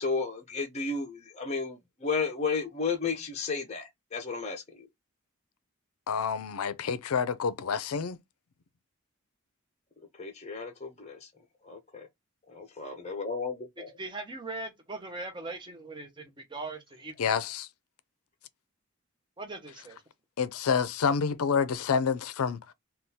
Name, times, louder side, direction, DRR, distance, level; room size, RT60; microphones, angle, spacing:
voice 1, 0.0-4.9 10.2-11.3 11.6-12.1 12.5-13.9, left 4 dB, 30° left, 0.6 m, -33 dB
voice 2, 6.1-8.2 17.2-17.7 20.4-22.6, left 6 dB, 80° left, 0.5 m, -28 dB
voice 3, 13.8-17.3 19.4-20.0, right 2 dB, 20° right, 0.7 m, -40 dB
3.6 x 2.3 x 2.7 m
head